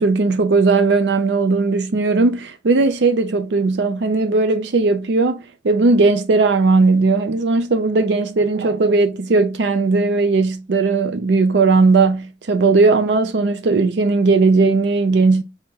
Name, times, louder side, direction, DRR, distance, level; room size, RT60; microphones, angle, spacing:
voice 1, 0.0-15.4, right 3 dB, 75° right, 0.5 m, -17 dB
2.9 x 2.9 x 3.6 m
head